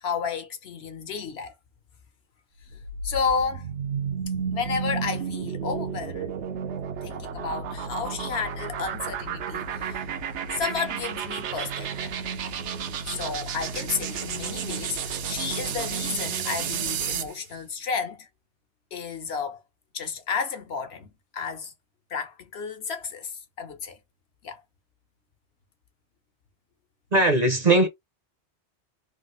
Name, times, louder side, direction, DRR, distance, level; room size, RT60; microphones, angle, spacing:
voice 1, 0.0-1.5 2.7-3.7 4.5-6.3 7.0-10.1 10.5-12.1 13.1-18.3 18.9-19.6 19.9-21.7 22.1-24.0 24.4-24.6, left 5 dB, 65° left, 1.1 m, -32 dB
sound 1, 2.6-17.4, right 7 dB, 80° right, 0.9 m, -32 dB
voice 2, 27.1-27.9, right 2 dB, 45° right, 0.7 m, -19 dB
3.3 x 2.4 x 3.0 m
omnidirectional pair, 1.2 m